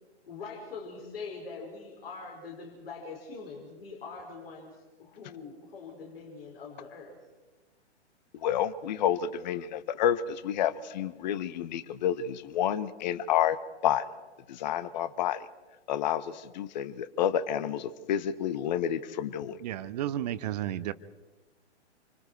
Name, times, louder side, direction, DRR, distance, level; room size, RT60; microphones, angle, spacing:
voice 1, 0.3-7.2, left 4 dB, 55° left, 1 dB, 5.0 m, -43 dB
voice 2, 8.4-13.6 13.8-14.1 14.5-15.4 15.9-19.6, left 10 dB, 40° left, 15 dB, 1.1 m, -29 dB
voice 3, 19.6-20.9, right 12 dB, 35° right, 14 dB, 0.9 m, -32 dB
28.0 x 25.5 x 4.6 m, 1.2 s
figure-of-eight pair, 120°, 35 cm